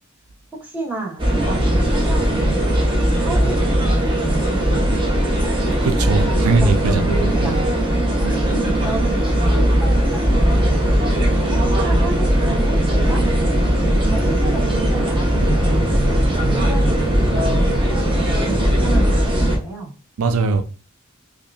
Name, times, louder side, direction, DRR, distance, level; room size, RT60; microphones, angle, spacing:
voice 1, 0.6-2.7 3.2-4.7 6.3-7.6 8.2-10.9 11.4-13.2 13.9-19.9, right 2 dB, 10° right, 1.0 m, -31 dB
sound 1, 1.2-19.6, right 1 dB, 25° right, 0.7 m, -18 dB
voice 2, 5.8-7.1 20.2-20.6, right 4 dB, 90° right, 0.5 m, -19 dB
5.3 x 2.4 x 2.3 m
head